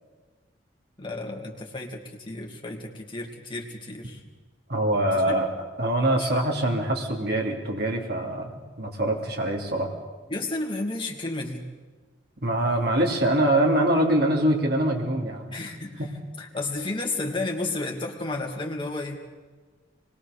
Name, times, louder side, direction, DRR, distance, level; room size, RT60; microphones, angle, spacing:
voice 1, 1.0-4.2 5.1-5.4 6.2-6.3 10.3-11.7 15.5-16.0 16.4-19.2, left 2 dB, 25° left, 0 dB, 2.7 m, -32 dB
voice 2, 4.7-5.5 5.8-9.9 12.4-15.5 16.0-16.1, right 1 dB, 55° right, 1 dB, 3.1 m, -24 dB
24.5 x 21.0 x 6.8 m, 1.4 s
head